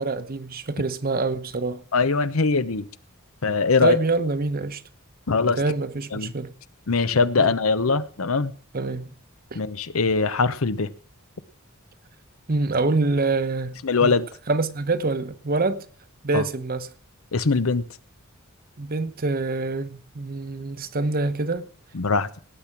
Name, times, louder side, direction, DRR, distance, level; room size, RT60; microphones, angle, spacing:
voice 1, 0.0-1.8 3.8-4.8 5.6-6.5 7.4-7.6 8.7-9.1 9.5-9.6 12.5-14.2 14.5-15.9 16.2-16.9 18.8-21.7, right 3 dB, 45° right, 1.0 m, -26 dB
voice 2, 1.9-2.9 3.4-4.0 5.3-5.6 6.1-6.3 6.9-8.5 9.5-10.9 13.8-14.3 16.3-16.4 17.3-17.8 21.9-22.3, left 4 dB, 80° left, 0.8 m, -22 dB
18.0 x 8.5 x 6.0 m
head